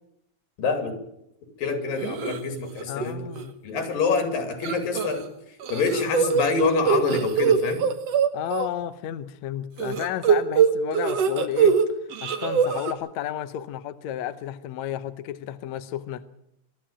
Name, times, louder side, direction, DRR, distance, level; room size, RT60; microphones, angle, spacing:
voice 1, 0.6-1.0 1.6-3.3 3.6-5.2 5.7-7.8, left 4 dB, 85° left, 4.6 m, -26 dB
sound 1, 2.0-2.4 2.8-3.1 3.4-3.5 4.6-5.3 5.6-8.7 9.8-11.8 12.1-12.9, right 7 dB, 55° right, 2.2 m, -22 dB
voice 2, 2.9-3.5 8.3-11.8 12.2-16.2, left 11 dB, 70° left, 1.9 m, -32 dB
23.5 x 13.0 x 8.8 m
omnidirectional pair, 3.9 m